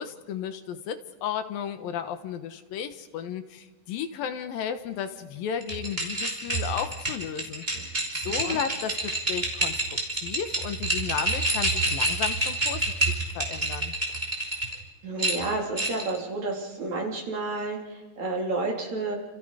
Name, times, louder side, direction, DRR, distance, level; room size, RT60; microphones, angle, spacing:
voice 1, 0.0-7.7 8.2-14.0, left 8 dB, 85° left, 9 dB, 3.1 m, -34 dB
sound 1, 5.6-14.7 15.2-16.2, right 1 dB, 15° right, 5.2 m, -28 dB
voice 2, 15.0-19.2, right 3 dB, 50° right, -1 dB, 5.1 m, -30 dB
30.0 x 28.5 x 5.1 m, 1.2 s
omnidirectional pair, 4.0 m